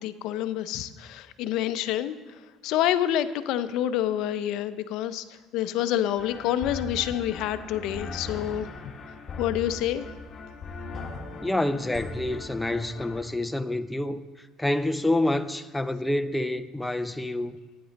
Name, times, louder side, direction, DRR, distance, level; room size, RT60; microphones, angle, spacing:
voice 1, 0.0-2.2 2.6-5.2 5.5-8.7 9.4-10.0, left 11 dB, 70° left, 0.5 m, -27 dB
sound 1, 6.2-13.2, left 3 dB, 40° left, 1.4 m, -39 dB
voice 2, 11.4-14.2 14.6-17.5, left 1 dB, 5° left, 0.5 m, -27 dB
10.0 x 9.6 x 4.0 m
supercardioid pair, 85°, 0 cm